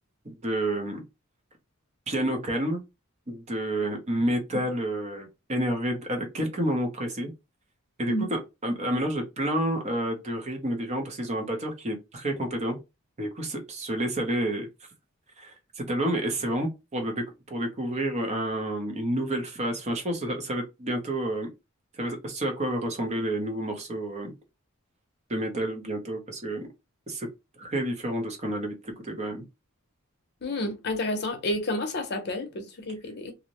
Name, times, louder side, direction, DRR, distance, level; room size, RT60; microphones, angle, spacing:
voice 1, 0.2-1.0 2.1-2.8 3.3-7.3 8.0-12.8 13.2-14.7 15.4-21.5 22.0-24.3 25.3-26.7 27.1-27.3 27.6-29.4, right 1 dB, 30° right, 0.6 m, -29 dB
voice 2, 30.4-33.3, left 1 dB, 50° left, 0.6 m, -30 dB
2.6 x 2.1 x 2.9 m
head